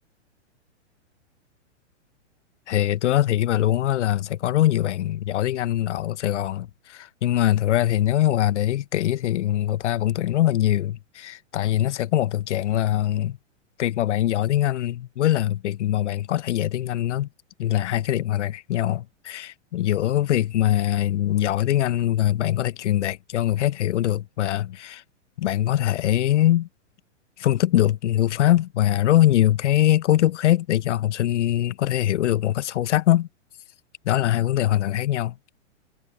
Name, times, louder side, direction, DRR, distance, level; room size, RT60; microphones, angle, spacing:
voice 1, 2.7-13.4 13.8-17.3 17.6-25.0 25.4-26.7 27.4-33.3 34.0-35.4, left 13 dB, 70° left, 0.9 m, -22 dB
hypercardioid pair, 120°, 37 cm